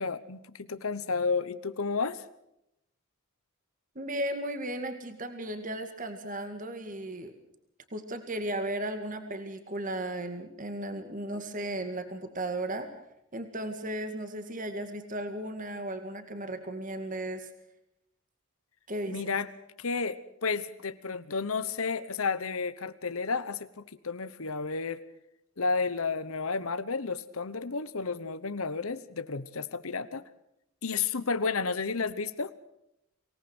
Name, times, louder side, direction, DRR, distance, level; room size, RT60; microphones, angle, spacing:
voice 1, 0.0-2.2 19.1-19.5 19.8-25.0 25.6-30.2 30.8-32.5, left 4 dB, 75° left, 13 dB, 1.1 m, -32 dB
voice 2, 4.0-7.3 7.9-12.9 13.3-17.5 18.9-19.2, right 1 dB, 35° right, 7 dB, 2.1 m, -35 dB
25.0 x 18.5 x 6.2 m, 0.81 s
head